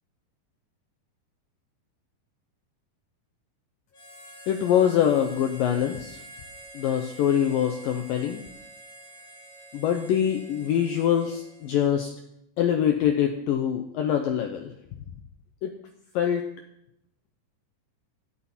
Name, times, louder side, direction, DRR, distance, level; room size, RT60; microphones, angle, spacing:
Harmonica, 3.9-12.0, right 1 dB, 40° left, 5.6 m, -47 dB
voice 1, 4.5-6.2 6.7-8.4 9.7-12.1 12.6-14.7 15.6-15.7 16.1-16.5, left 9 dB, 85° left, 5 dB, 2.0 m, -24 dB
18.0 x 13.0 x 4.4 m, 0.77 s
omnidirectional pair, 5.3 m